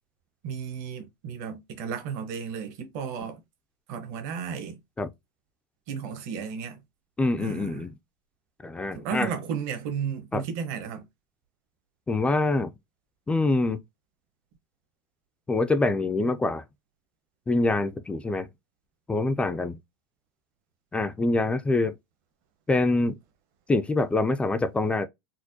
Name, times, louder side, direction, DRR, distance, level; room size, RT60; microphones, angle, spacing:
voice 1, 0.4-3.4 3.9-4.8 5.9-6.8 7.4-7.8 8.9-11.1, right 7 dB, 55° right, 1.2 m, -33 dB
voice 2, 7.2-8.0 8.6-9.3 10.3-10.4 12.1-12.7 13.3-13.8 15.5-16.6 17.5-18.5 19.1-19.7 20.9-22.0 22.7-23.2 23.7-25.1, left 2 dB, 10° left, 0.3 m, -25 dB
4.3 x 2.1 x 2.7 m
supercardioid pair, 130°, 11 cm